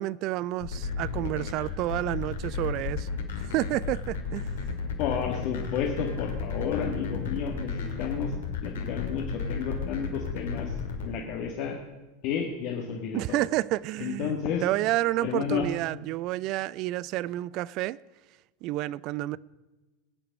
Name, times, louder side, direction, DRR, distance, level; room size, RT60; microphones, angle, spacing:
voice 1, 0.0-3.1 3.4-4.6 13.1-18.0 18.6-19.4, right 16 dB, 50° right, 0.3 m, -30 dB
sound 1, 0.6-11.1, left 5 dB, 75° left, 2.2 m, -33 dB
voice 2, 5.0-8.3 8.6-10.7 11.0-11.8 12.2-13.4 14.0-14.6 15.2-15.7, left 7 dB, 55° left, 1.7 m, -31 dB
21.5 x 8.8 x 5.2 m
hypercardioid pair, 90°, 0 cm